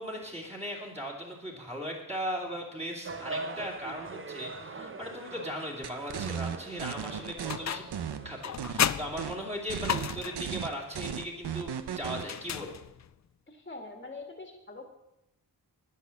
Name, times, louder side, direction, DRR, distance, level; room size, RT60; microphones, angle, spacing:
voice 1, 0.0-7.9 8.2-12.8, equal, 15° right, -2 dB, 2.7 m, -38 dB
sound 1, 3.0-8.5, right 3 dB, 30° right, 0.9 m, -42 dB
sound 2, 5.8-7.6 7.9-8.9 9.2-9.4 9.7-12.3, right 8 dB, 85° right, 0.9 m, -35 dB
sound 3, 7.5-8.0 8.4-10.5 12.2-13.1, left 9 dB, 45° left, 0.5 m, -33 dB
voice 2, 13.5-14.9, left 3 dB, 25° left, 3 dB, 1.8 m, -44 dB
10.0 x 10.0 x 7.1 m, 0.89 s
wide cardioid pair, 135°, 38 cm